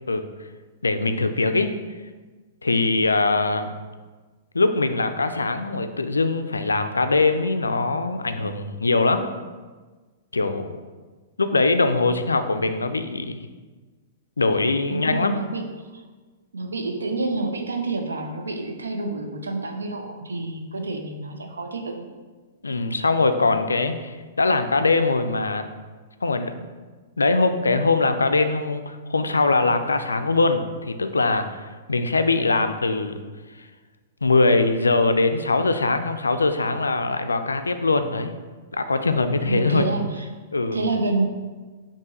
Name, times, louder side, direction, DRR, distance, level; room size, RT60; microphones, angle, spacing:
voice 1, 0.8-1.7 2.6-3.7 4.5-9.3 10.3-10.6 11.4-13.5 14.4-15.5 22.6-25.7 26.2-26.5 27.2-33.2 33.6-33.7 34.2-38.3 38.7-39.9 40.5-40.8, left 3 dB, 80° left, 9 dB, 0.3 m, -22 dB
voice 2, 14.9-15.6 15.9-16.0 16.5-22.1 39.5-40.3 40.7-41.3, right 3 dB, 75° right, 3 dB, 0.6 m, -28 dB
4.4 x 2.9 x 4.1 m, 1.4 s
figure-of-eight pair, 110°, 0 cm